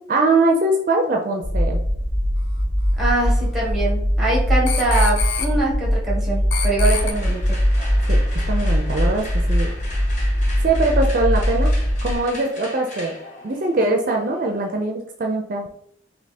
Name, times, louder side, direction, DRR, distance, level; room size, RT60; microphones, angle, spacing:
voice 1, 0.1-1.8 8.1-8.2 8.5-9.7 10.6-11.7 12.0-13.2 13.4-15.7, right 2 dB, 50° right, 2 dB, 0.5 m, -22 dB
sound 1, 1.4-12.1, equal, 20° left, 0.4 m, -21 dB
voice 2, 3.0-7.6, right 2 dB, ahead, -4 dB, 1.3 m, -23 dB
sound 2, 3.3-3.4 4.7-5.5 6.5-7.1, left 6 dB, 75° left, 0.6 m, -26 dB
sound 3, 6.8-14.8, left 1 dB, 45° left, 0.9 m, -38 dB
3.4 x 2.8 x 4.1 m, 0.71 s
head